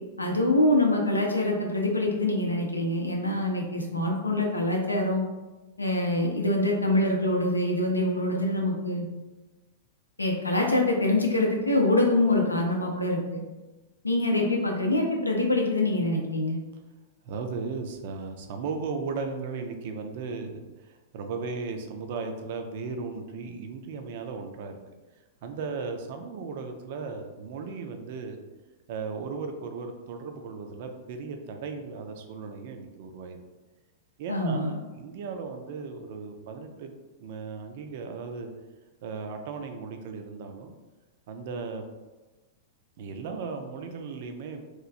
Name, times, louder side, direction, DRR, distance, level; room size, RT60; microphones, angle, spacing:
voice 1, 0.2-5.2 5.8-9.1 10.2-13.4 14.0-16.6 34.3-34.8, left 1 dB, 85° left, 1 dB, 0.5 m, -25 dB
voice 2, 17.2-24.8 25.4-28.4 28.9-33.4 34.2-36.9 37.2-38.5 39.0-40.7 41.3-41.8 43.0-44.7, right 4 dB, 50° right, 5 dB, 0.4 m, -36 dB
3.0 x 2.3 x 2.5 m, 1.2 s
figure-of-eight pair, 100°, 0 cm